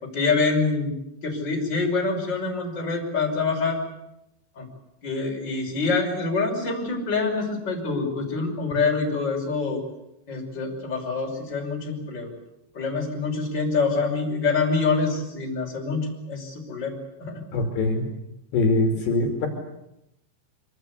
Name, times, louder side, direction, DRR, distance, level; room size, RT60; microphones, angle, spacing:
voice 1, 0.0-0.9 1.2-3.8 4.6-4.7 5.0-9.8 10.3-12.3 12.7-16.9 17.2-17.4, left 4 dB, 20° left, 1 dB, 5.9 m, -26 dB
voice 2, 17.5-18.1 18.5-19.5, left 2 dB, 65° left, 3 dB, 4.8 m, -22 dB
25.5 x 25.0 x 8.3 m, 0.83 s
omnidirectional pair, 5.6 m